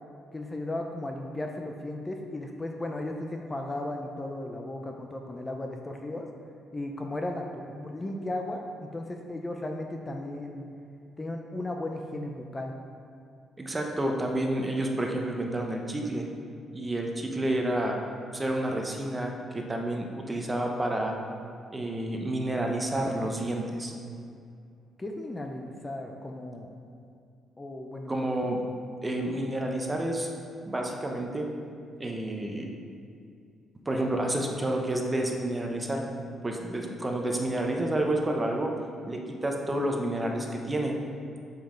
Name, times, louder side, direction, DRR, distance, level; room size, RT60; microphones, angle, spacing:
voice 1, 0.3-6.3 6.7-10.6 11.2-12.7 25.0-26.7 27.6-28.3, left 1 dB, 20° left, 2 dB, 0.6 m, -35 dB
voice 2, 13.6-16.3 16.7-18.0 18.3-21.1 21.7-23.9 28.1-28.6 29.0-30.3 30.7-31.5 32.0-32.7 33.8-36.0 36.4-38.7 39.1-40.9, right 1 dB, 20° right, 1 dB, 0.9 m, -29 dB
6.9 x 5.4 x 3.8 m, 2.4 s
cardioid pair, 90°, 0 cm